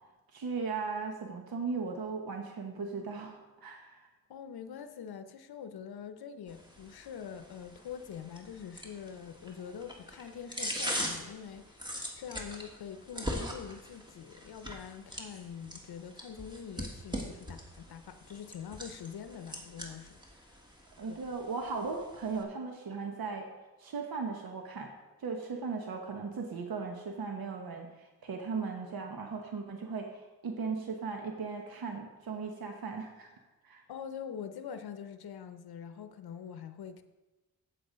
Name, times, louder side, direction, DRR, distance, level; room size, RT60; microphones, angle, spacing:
voice 1, 0.3-4.1 21.0-23.5 23.8-24.9 25.2-33.3 33.6-33.8, right 4 dB, 70° right, 3 dB, 1.1 m, -37 dB
voice 2, 4.3-20.2 20.4-20.5 21.1-21.2 33.9-37.0, left 8 dB, 80° left, 9 dB, 0.7 m, -44 dB
sound 1, 6.5-22.4, equal, 10° right, 1.5 m, -42 dB
7.9 x 7.8 x 5.1 m, 1.1 s
wide cardioid pair, 85°, 37 cm